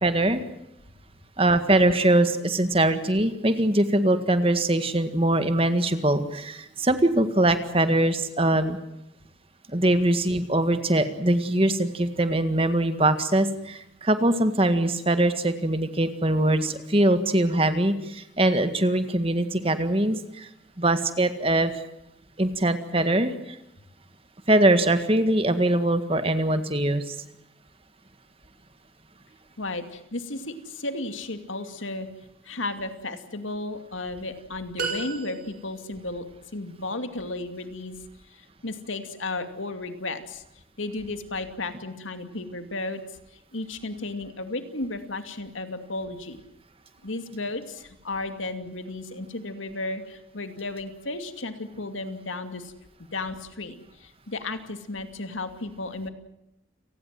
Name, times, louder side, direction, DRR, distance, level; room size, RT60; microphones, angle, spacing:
voice 1, 0.0-0.4 1.4-8.8 9.7-20.5 20.8-21.8 22.4-23.6 24.5-27.1, right 1 dB, 30° right, 9 dB, 1.8 m, -22 dB
voice 2, 29.6-32.1 32.4-36.2 36.5-38.0 38.3-40.4 40.8-43.0 43.3-46.4 47.0-52.7 53.0-56.1, left 2 dB, 85° left, 8 dB, 2.6 m, -34 dB
sound 1, 34.8-35.9, right 4 dB, 45° right, 5.6 m, -33 dB
29.5 x 19.0 x 7.6 m, 0.84 s
head